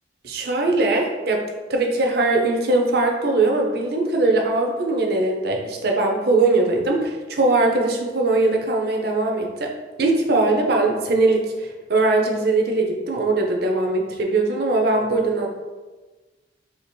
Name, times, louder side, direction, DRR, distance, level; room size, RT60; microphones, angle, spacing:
voice 1, 0.2-1.4 1.7-9.7 10.0-15.5, right 2 dB, 55° right, 2 dB, 0.6 m, -21 dB
2.9 x 2.8 x 4.3 m, 1.3 s
head